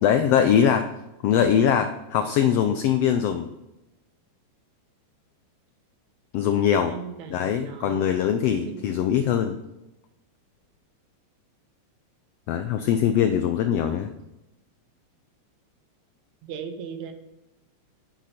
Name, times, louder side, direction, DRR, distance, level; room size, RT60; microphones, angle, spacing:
voice 1, 0.0-0.9 1.2-3.5 6.3-7.0 7.3-9.6 12.5-14.1, left 8 dB, 85° left, 8 dB, 1.4 m, -22 dB
voice 2, 6.9-8.1 8.6-8.8 16.4-17.1, right 7 dB, 75° right, 8 dB, 2.2 m, -37 dB
10.0 x 8.4 x 4.3 m, 0.96 s
omnidirectional pair, 3.4 m